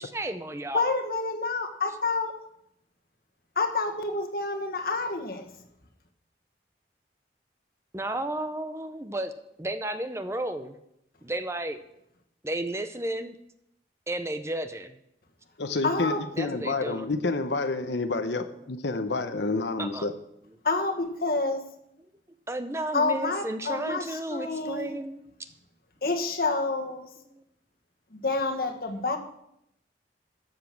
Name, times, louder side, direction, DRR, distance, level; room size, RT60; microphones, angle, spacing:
voice 1, 0.0-0.9 7.9-9.3 9.6-10.8 11.2-11.8 12.4-13.4 14.1-15.0 16.4-17.1 19.8-20.1 22.5-25.2 27.3-27.4, right 1 dB, 15° right, 9 dB, 0.6 m, -33 dB
voice 2, 0.7-2.3 3.5-5.5 15.8-16.2 20.6-21.6 22.9-24.9 26.0-27.1 28.1-29.2, left 3 dB, 55° left, 5 dB, 1.5 m, -28 dB
voice 3, 15.6-20.1, left 3 dB, 75° left, 8 dB, 0.8 m, -29 dB
13.0 x 7.6 x 6.0 m, 0.79 s
head